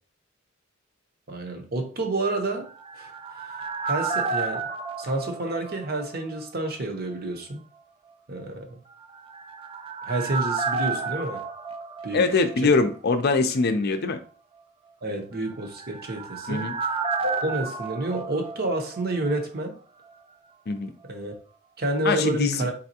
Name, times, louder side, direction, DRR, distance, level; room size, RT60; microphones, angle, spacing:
voice 1, 1.3-3.1 3.8-4.7 5.0-7.6 8.3-8.7 10.1-11.4 12.0-12.3 12.6-12.7 15.0-16.7 17.2-19.8 21.1-21.4 21.8-22.7, right 2 dB, 45° right, 0.8 m, -29 dB
sound 1, 2.5-6.4 6.6-6.7 9.1-12.9 13.1-13.2 15.5-19.3 19.6-19.7, right 4 dB, 25° right, 0.4 m, -31 dB
voice 2, 12.1-14.2 16.5-16.8 20.7-20.9 22.0-22.6, left 3 dB, 50° left, 0.5 m, -23 dB
4.1 x 3.4 x 2.7 m
head